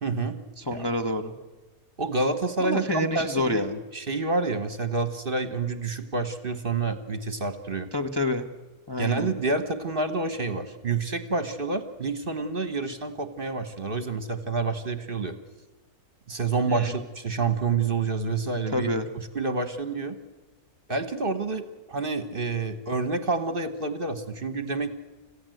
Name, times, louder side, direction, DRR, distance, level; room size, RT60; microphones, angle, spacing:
voice 1, 0.0-0.4 0.7-0.9 2.0-3.7 3.9-7.9 9.0-15.4 16.3-20.1 20.9-24.9, right 3 dB, 40° right, 10 dB, 1.3 m, -28 dB
voice 2, 0.6-1.3 2.6-3.8 7.9-8.5 8.9-9.3 16.7-16.9 18.7-19.1, left 1 dB, 20° left, 3 dB, 0.9 m, -28 dB
26.0 x 15.5 x 7.8 m, 1.2 s
omnidirectional pair, 1.6 m